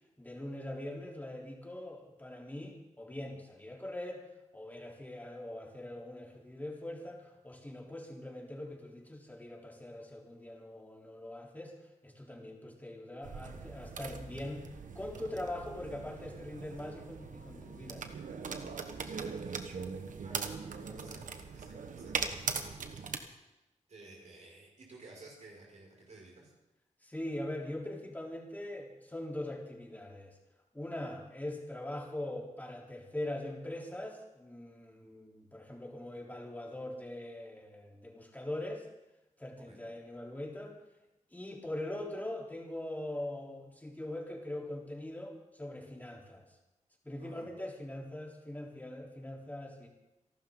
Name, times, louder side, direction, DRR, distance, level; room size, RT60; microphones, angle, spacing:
voice 1, 0.2-4.2 4.5-11.8 12.0-14.7 15.0-18.1 20.8-21.2 27.0-30.4 30.7-38.9 39.4-40.8 41.3-46.5 47.0-49.9, left 1 dB, 15° left, -1 dB, 3.7 m, -42 dB
sound 1, 13.2-23.2, right 5 dB, 90° right, 1.3 m, -40 dB
voice 2, 20.2-23.5 23.9-26.5 39.6-39.9 47.2-47.5, right 2 dB, 65° right, -3 dB, 6.2 m, -55 dB
29.0 x 12.0 x 3.9 m, 0.96 s
wide cardioid pair, 100°, 13 cm